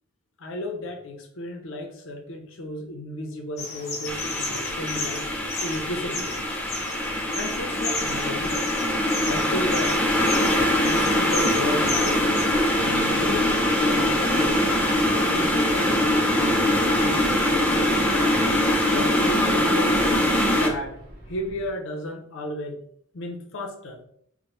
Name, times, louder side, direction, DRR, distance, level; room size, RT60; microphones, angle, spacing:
voice 1, 0.4-5.3 5.6-6.3 7.3-8.6 9.2-10.0 10.8-12.4 12.8-14.6 15.1-18.3 18.9-20.1 20.5-21.0 21.3-22.8 23.1-24.0, left 1 dB, 65° left, 3 dB, 0.5 m, -34 dB
sound 1, 3.6-12.4, left 3 dB, 30° left, 0.8 m, -34 dB
sound 2, 4.1-20.7, left 1 dB, 5° left, 0.3 m, -23 dB
sound 3, 10.5-21.7, equal, 45° right, 0.8 m, -38 dB
3.1 x 2.1 x 2.9 m, 0.67 s
head